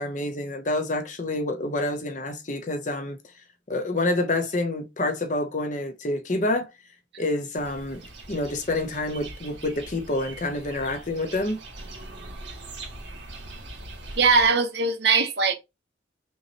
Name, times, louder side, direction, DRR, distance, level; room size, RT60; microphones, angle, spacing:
voice 1, 0.0-3.2 3.7-6.7 7.2-8.0 8.3-11.6, left 2 dB, 45° left, 0.9 m, -27 dB
sound 1, 7.6-14.5, right 2 dB, 90° right, 2.1 m, -42 dB
voice 2, 14.2-15.5, right 4 dB, 65° right, 1.0 m, -20 dB
5.6 x 3.1 x 2.9 m
head